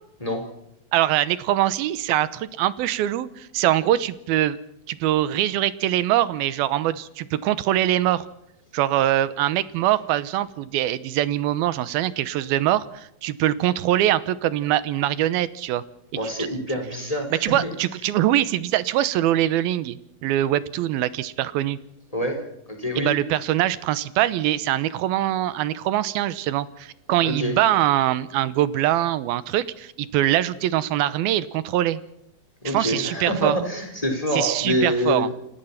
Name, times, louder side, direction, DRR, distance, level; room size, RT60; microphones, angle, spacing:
voice 1, 0.9-4.6 4.9-8.3 8.7-15.8 16.4-16.5 17.4-21.8 23.0-32.0 32.7-33.6 34.3-35.3, right 13 dB, 90° right, 16 dB, 2.8 m, -23 dB
voice 2, 16.2-17.7 22.1-22.4 22.7-23.1 27.2-27.5 32.6-35.3, equal, 10° left, 4 dB, 4.5 m, -26 dB
29.0 x 17.0 x 5.8 m, 0.77 s
omnidirectional pair, 4.2 m